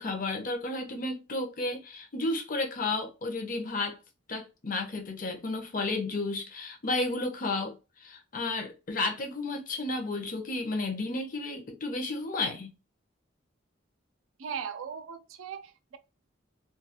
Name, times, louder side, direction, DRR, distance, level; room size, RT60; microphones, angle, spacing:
voice 1, 0.0-4.0 4.3-7.7 8.0-12.7, left 2 dB, 40° left, 0.6 m, -32 dB
voice 2, 14.4-16.0, right 7 dB, 80° right, 0.4 m, -38 dB
2.3 x 2.2 x 2.8 m
head